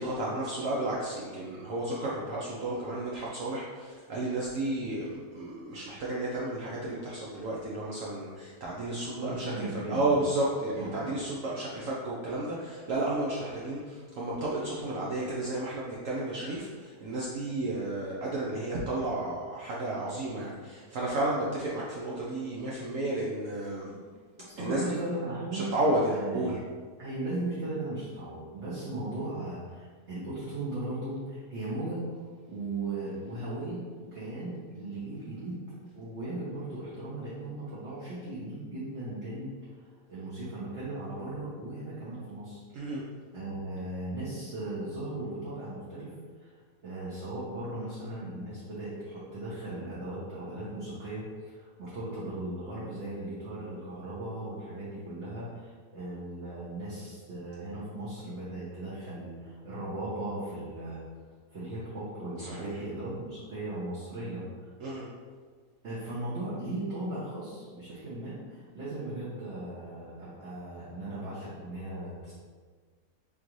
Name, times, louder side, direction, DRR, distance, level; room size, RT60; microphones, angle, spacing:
voice 1, 0.0-23.9 24.6-25.0 25.5-26.6 42.7-43.0 62.4-62.8 64.8-65.1, right 1 dB, 65° right, -5 dB, 0.9 m, -32 dB
voice 2, 9.1-10.2 10.8-11.1 24.5-25.7 26.1-26.5 27.0-32.0 32.5-35.6 35.9-39.5 40.1-42.6 42.9-43.0 43.3-46.1 46.4-46.6 46.8-61.0 61.5-64.7 65.8-72.3, right 2 dB, 50° right, -10 dB, 1.2 m, -37 dB
3.9 x 3.7 x 3.0 m, 1.5 s
omnidirectional pair, 1.7 m